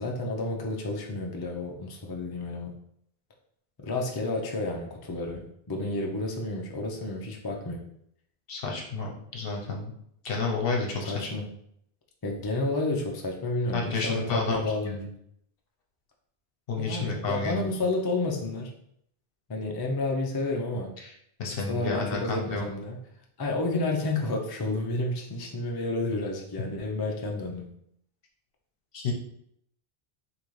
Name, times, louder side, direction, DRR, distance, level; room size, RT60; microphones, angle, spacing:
voice 1, 0.0-2.7 3.8-7.8 11.1-11.5 12.2-15.0 16.8-18.7 19.5-20.9 21.5-23.0 23.4-27.7, left 2 dB, 30° left, 0 dB, 0.4 m, -30 dB
voice 2, 8.5-9.9 10.2-11.3 13.7-15.1 16.7-17.7 21.0-21.1 21.4-22.6 28.9-29.1, left 3 dB, 65° left, 0 dB, 1.0 m, -30 dB
3.7 x 2.9 x 3.1 m, 0.71 s
omnidirectional pair, 1.1 m